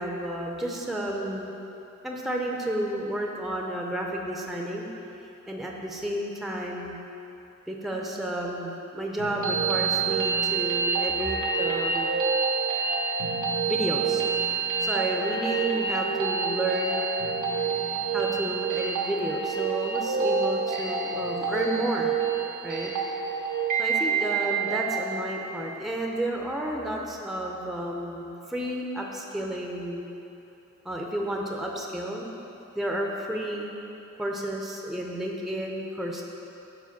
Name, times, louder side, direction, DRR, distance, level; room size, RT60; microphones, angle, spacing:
voice 1, 0.0-1.5 2.0-4.9 5.2-7.0 7.7-12.2 13.7-17.0 18.1-22.1 22.6-22.9 23.8-30.1 30.8-32.3 32.7-33.7 34.2-36.2, right 1 dB, ahead, 0 dB, 0.5 m, -31 dB
sound 1, 9.2-25.2, right 5 dB, 85° right, 0.9 m, -27 dB
4.8 x 4.3 x 5.9 m, 2.9 s
wide cardioid pair, 65°, 30 cm